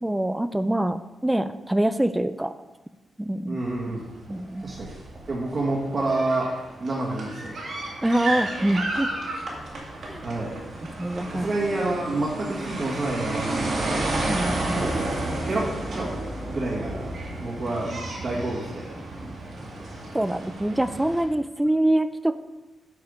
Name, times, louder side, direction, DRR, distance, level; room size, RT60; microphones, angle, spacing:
voice 1, 0.0-2.5 3.2-3.6 4.3-4.7 8.0-9.1 10.1-10.2 11.0-11.5 14.2-14.9 20.1-22.4, right 1 dB, 10° right, 12 dB, 0.3 m, -25 dB
voice 2, 3.5-4.1 4.6-4.9 5.3-6.5 6.8-7.6 10.2-10.5 11.3-14.2 14.7-15.0 15.5-15.7 15.9-16.1 16.5-17.1 17.4-18.9, right 2 dB, 40° right, -5 dB, 1.5 m, -28 dB
sound 1, 3.6-3.9 4.2-21.2, right 2 dB, 55° right, 2.0 m, -32 dB
8.2 x 4.9 x 5.2 m, 1.1 s
wide cardioid pair, 135°, 0 cm